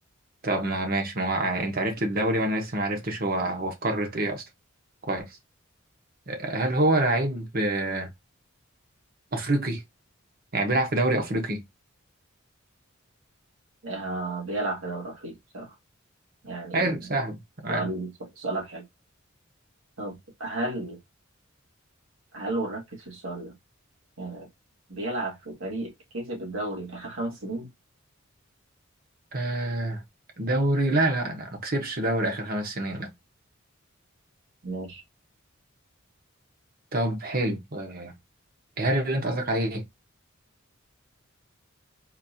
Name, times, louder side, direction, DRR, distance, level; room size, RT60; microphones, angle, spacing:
voice 1, 0.4-4.4 5.1-5.3 6.3-8.1 9.3-9.8 10.5-11.6 16.7-17.9 29.3-30.0 30.4-33.1 36.9-38.1 38.8-39.8, right 1 dB, 45° right, 1.2 m, -26 dB
voice 2, 13.8-15.8 16.4-16.9 17.7-18.9 20.0-21.0 22.3-23.6 24.2-24.5 24.9-27.7 34.6-35.0, right 2 dB, 75° right, 1.8 m, -33 dB
4.3 x 2.6 x 2.8 m
head